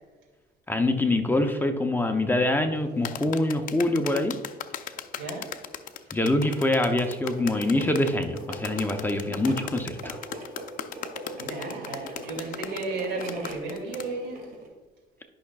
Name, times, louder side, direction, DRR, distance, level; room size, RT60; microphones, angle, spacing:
voice 1, 0.7-4.4 6.1-10.2, left 1 dB, 10° left, 5 dB, 0.6 m, -25 dB
sound 1, 2.8-14.7, right 2 dB, 60° right, 2.1 m, -42 dB
sound 2, 3.0-14.1, left 10 dB, 55° left, 0.5 m, -37 dB
voice 2, 11.4-14.4, right 3 dB, 80° right, 1 dB, 2.3 m, -34 dB
11.5 x 5.8 x 2.3 m, 1.3 s
cardioid pair, 110°, 17 cm